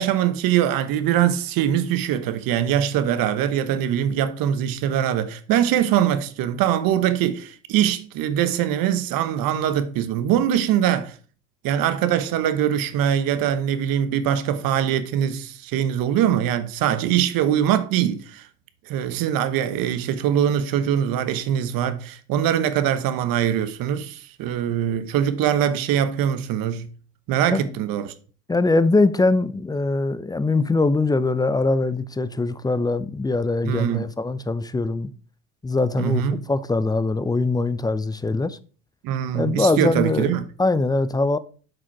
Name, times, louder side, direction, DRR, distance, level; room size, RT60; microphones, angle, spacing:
voice 1, 0.0-11.2 11.6-18.5 18.9-26.9 27.3-28.1 33.6-34.1 36.0-36.4 39.0-40.4, right 10 dB, 60° right, 1.1 m, -22 dB
voice 2, 28.5-35.1 35.6-38.6 39.3-40.3 40.6-41.4, left 3 dB, 10° left, 0.5 m, -22 dB
7.7 x 5.0 x 4.6 m
hypercardioid pair, 80°, 38 cm